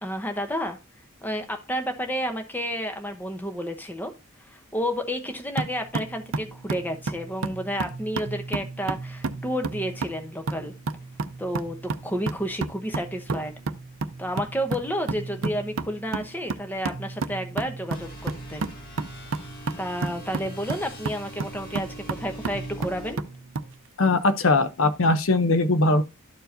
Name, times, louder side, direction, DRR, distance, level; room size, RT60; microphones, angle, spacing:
voice 1, 0.0-0.8 1.2-4.1 4.4-10.7 11.4-13.5 14.2-18.6 19.8-23.2, equal, 10° left, 0.8 m, -31 dB
sound 1, 5.6-23.7, right 3 dB, 60° right, 0.5 m, -32 dB
sound 2, 17.9-23.2, equal, 40° left, 1.6 m, -43 dB
voice 2, 24.0-26.0, left 2 dB, 65° left, 0.6 m, -20 dB
12.5 x 4.6 x 2.6 m
head